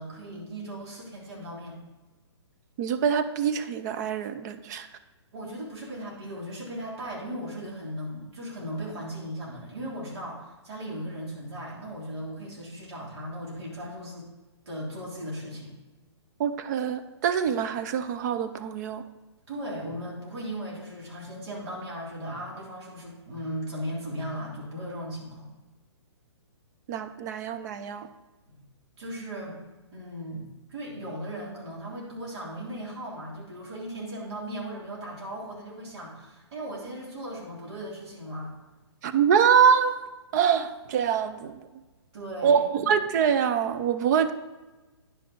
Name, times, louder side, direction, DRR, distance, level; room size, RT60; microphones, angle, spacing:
voice 1, 0.0-1.8 5.3-14.3 14.7-15.7 19.5-25.5 29.0-29.5 29.9-38.5 42.1-42.9, equal, 65° right, -3 dB, 3.5 m, -37 dB
voice 2, 2.8-4.9 16.4-19.0 26.9-28.1 39.0-40.0 40.3-41.7 42.4-44.3, right 7 dB, 40° right, 10 dB, 0.6 m, -24 dB
9.9 x 6.1 x 4.5 m, 1.2 s
hypercardioid pair, 145°, 15 cm